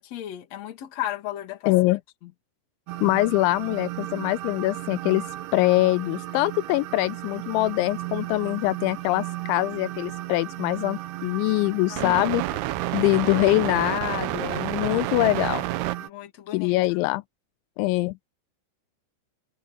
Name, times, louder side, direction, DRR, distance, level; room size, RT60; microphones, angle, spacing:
voice 1, 0.0-1.7 2.2-2.3 11.9-12.1 14.7-15.1 16.0-16.7, left 12 dB, 45° left, 2.5 m, -35 dB
voice 2, 1.7-2.0 3.0-5.3 5.5-12.4 12.9-15.7 16.5-17.2 17.8-18.1, left 19 dB, 85° left, 2.9 m, -23 dB
sound 1, 2.9-16.1, right 16 dB, 80° right, 2.5 m, -32 dB
omnidirectional pair, 5.4 m